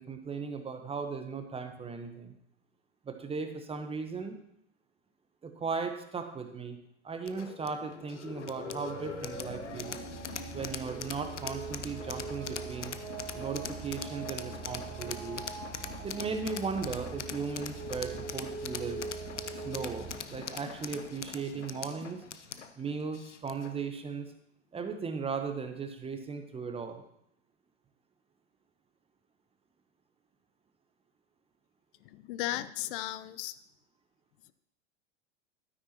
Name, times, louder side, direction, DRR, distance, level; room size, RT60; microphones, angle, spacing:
voice 1, 0.0-2.3 3.0-4.3 5.4-6.8 7.0-10.0 10.5-13.0 13.3-15.4 16.0-19.0 19.5-22.2 22.8-24.3 24.7-27.0, right 5 dB, 15° right, 7 dB, 1.0 m, -37 dB
sound 1, 7.3-23.8, left 7 dB, 85° left, 0.7 m, -42 dB
sound 2, 8.6-20.2, right 5 dB, 55° right, 3.2 m, -42 dB
voice 2, 32.0-33.6, left 14 dB, 50° left, 14 dB, 0.7 m, -36 dB
12.5 x 9.5 x 3.0 m, 0.75 s
figure-of-eight pair, 90°, 35 cm